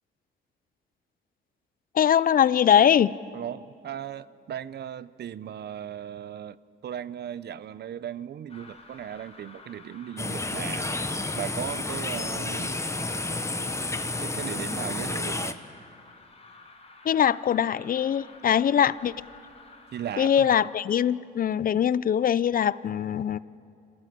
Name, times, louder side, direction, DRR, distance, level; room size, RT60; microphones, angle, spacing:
voice 1, 1.9-3.1 17.0-19.1 20.2-23.4, left 9 dB, 45° left, 19 dB, 0.5 m, -22 dB
voice 2, 3.3-6.6 6.8-10.9 11.4-12.7 14.2-15.6 19.9-20.7, right 10 dB, 55° right, 17 dB, 0.6 m, -37 dB
sound 1, 8.5-20.6, left 3 dB, 30° left, 4.2 m, -51 dB
sound 2, 10.2-15.5, left 2 dB, 15° left, 1.1 m, -31 dB
26.5 x 18.0 x 7.7 m, 2.6 s
cardioid pair, 90°, 20 cm